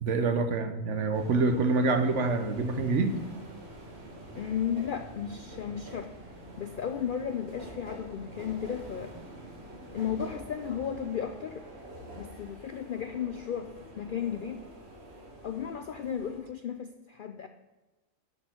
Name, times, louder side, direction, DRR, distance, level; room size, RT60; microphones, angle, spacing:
voice 1, 0.0-3.2, right 3 dB, 70° right, 8 dB, 1.1 m, -26 dB
sound 1, 1.1-16.4, right 1 dB, 55° right, 2.0 m, -46 dB
voice 2, 4.3-6.1 6.6-9.1 9.9-11.7 12.2-14.6 15.4-17.5, left 8 dB, 65° left, 8 dB, 0.5 m, -34 dB
12.5 x 4.4 x 5.7 m, 1.1 s
omnidirectional pair, 1.4 m